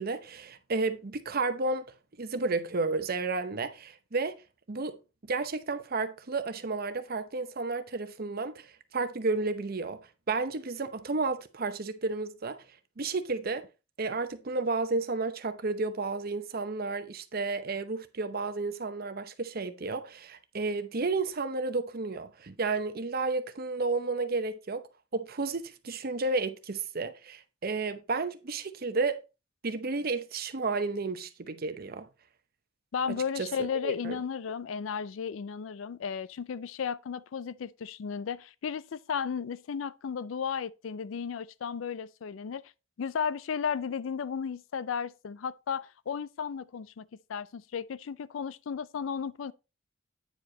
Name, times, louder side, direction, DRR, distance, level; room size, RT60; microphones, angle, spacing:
voice 1, 0.0-1.9 2.2-4.4 4.7-5.0 5.2-10.0 10.3-12.6 13.0-13.7 14.0-24.8 25.1-29.2 29.6-32.1 33.4-33.5 33.8-34.2, right 3 dB, 50° right, 0.8 m, -32 dB
voice 2, 32.9-42.6 43.0-49.5, left 6 dB, 80° left, 0.4 m, -34 dB
9.0 x 4.9 x 3.8 m
head